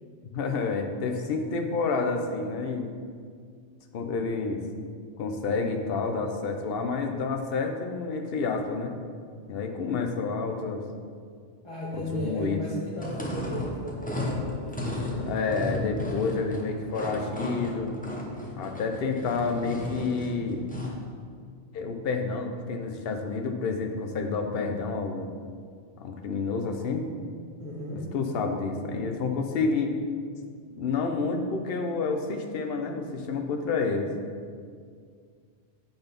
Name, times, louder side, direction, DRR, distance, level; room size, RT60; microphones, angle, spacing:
voice 1, 0.3-2.9 3.9-4.6 5.2-8.9 9.5-10.8 11.9-12.6 15.2-18.0 18.6-20.6 21.7-25.3 26.0-27.1 28.1-29.9 30.7-34.1, left 4 dB, 60° left, 4 dB, 0.9 m, -29 dB
voice 2, 11.6-15.3 27.6-28.2, equal, 25° left, -9 dB, 1.4 m, -36 dB
sound 1, 12.9-21.0, left 1 dB, 10° left, 0.8 m, -34 dB
8.8 x 4.0 x 5.1 m, 2.1 s
omnidirectional pair, 1.1 m